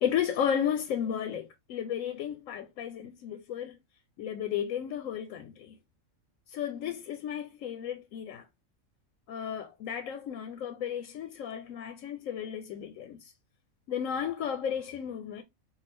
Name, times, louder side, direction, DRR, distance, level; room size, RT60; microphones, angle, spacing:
voice 1, 0.0-3.8 4.2-5.7 6.5-8.4 9.3-13.3 13.9-15.4, left 9 dB, 85° left, 1.0 m, -33 dB
5.5 x 2.4 x 3.3 m
omnidirectional pair, 1.4 m